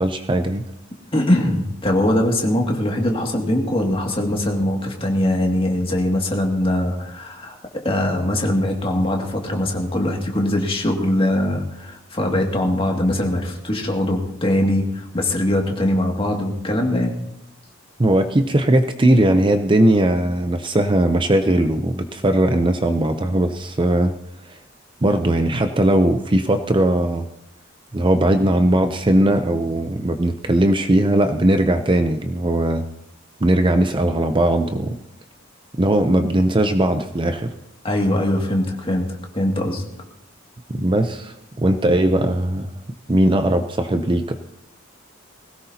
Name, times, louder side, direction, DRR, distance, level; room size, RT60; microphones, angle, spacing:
voice 1, 0.0-0.6 18.0-24.2 24.5-24.6 25.0-27.3 27.9-32.8 33.4-34.9 35.7-37.5 40.7-42.7 43.1-44.4, right 1 dB, 25° right, 7 dB, 0.6 m, -19 dB
voice 2, 1.1-17.2 37.8-39.8, left 1 dB, 25° left, 1 dB, 2.2 m, -21 dB
20.0 x 17.5 x 2.8 m, 0.82 s
head